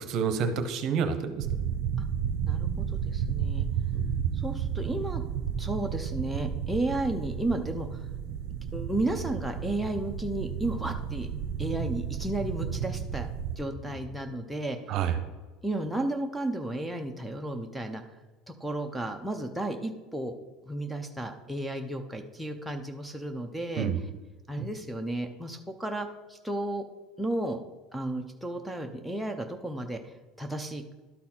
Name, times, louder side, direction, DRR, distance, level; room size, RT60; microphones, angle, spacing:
voice 1, 0.0-1.5 3.9-4.1 14.9-15.1 23.8-24.0 24.6-24.7, right 7 dB, 50° right, 8 dB, 0.9 m, -28 dB
sound 1, 1.4-13.6, right 8 dB, 65° right, 0.5 m, -32 dB
voice 2, 2.5-3.7 4.3-5.2 5.6-8.1 8.7-11.3 11.6-13.3 13.6-15.0 15.6-18.0 18.6-20.3 20.7-24.1 24.5-26.8 27.2-27.6 27.9-30.9, right 1 dB, ahead, 2 dB, 0.6 m, -33 dB
sound 2, 8.9-14.3, left 1 dB, 60° left, 2.0 m, -49 dB
12.0 x 4.1 x 4.3 m, 1.2 s
supercardioid pair, 135°, 0 cm